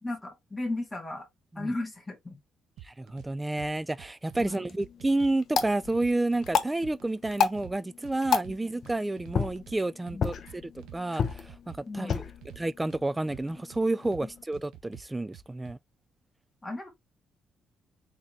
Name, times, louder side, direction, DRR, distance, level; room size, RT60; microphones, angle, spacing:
voice 1, 0.0-1.2 1.6-2.4 4.4-4.6 8.6-8.7 10.1-10.3 11.9-12.2 14.2-14.3 16.6-16.9, left 2 dB, 20° left, 2.2 m, -35 dB
sound 1, 2.8-3.3 3.6-4.5 4.8-6.5 6.8-7.7 8.0-9.8 10.1-11.0 11.3-13.0 13.3-14.2 14.5-15.7, right 12 dB, 85° right, 0.8 m, -48 dB
voice 2, 2.9-12.2 12.6-15.8, right 2 dB, 15° right, 0.4 m, -30 dB
sound 2, 4.3-14.4, left 6 dB, 60° left, 0.9 m, -33 dB
4.0 x 3.7 x 3.1 m
cardioid pair, 90°, 0 cm